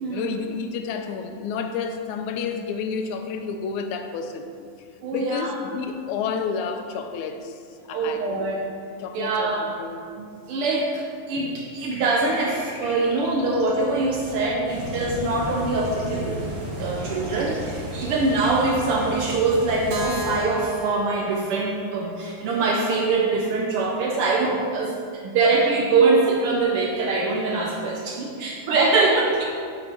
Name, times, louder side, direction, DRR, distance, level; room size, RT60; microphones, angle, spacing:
voice 1, 0.1-4.5 5.1-8.5 9.0-10.1 28.3-28.6, left 6 dB, 85° left, 6 dB, 2.0 m, -30 dB
voice 2, 5.0-5.5 7.9-8.6 9.1-9.6 10.5-29.4, right 3 dB, 85° right, -1 dB, 1.2 m, -23 dB
sound 1, 11.8-18.6, equal, 45° left, 2.6 m, -41 dB
sound 2, 14.7-20.4, equal, 50° right, 2.4 m, -34 dB
Keyboard (musical), 19.9-23.8, left 1 dB, 65° right, 1.8 m, -34 dB
7.9 x 6.3 x 4.3 m, 2.2 s
omnidirectional pair, 3.4 m